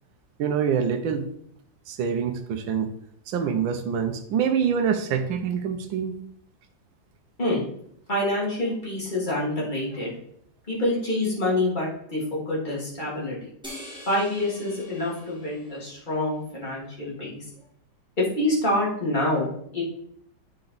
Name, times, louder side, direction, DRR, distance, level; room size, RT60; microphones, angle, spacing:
voice 1, 0.4-1.3 1.9-2.9 3.3-6.2, right 7 dB, 80° right, 6 dB, 1.5 m, -25 dB
voice 2, 8.1-10.1 10.7-13.5 14.1-17.4 18.2-19.8, left 1 dB, 25° left, -6 dB, 2.8 m, -26 dB
sound 1, 13.6-16.3, left 1 dB, 5° right, 1.6 m, -44 dB
8.5 x 4.8 x 4.0 m, 0.68 s
omnidirectional pair, 2.1 m